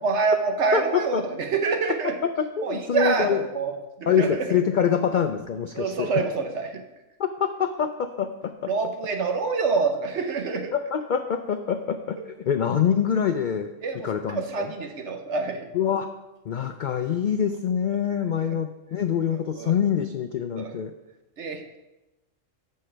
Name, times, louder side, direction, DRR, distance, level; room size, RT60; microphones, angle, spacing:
voice 1, 0.0-2.1 2.6-3.7 4.0-4.6 5.7-6.8 8.7-10.7 12.2-12.3 13.8-15.6 19.3-19.7 20.6-20.7 21.4-21.8, right 4 dB, 60° right, 5 dB, 1.1 m, -26 dB
voice 2, 0.7-1.2 2.4-3.4 4.1-6.1 7.2-8.3 8.6-8.7 10.7-12.2 12.5-13.7 14.0-14.7 15.7-16.1 16.5-20.9, left 8 dB, 80° left, 8 dB, 0.4 m, -25 dB
13.5 x 5.6 x 3.3 m, 1.0 s
omnidirectional pair, 1.4 m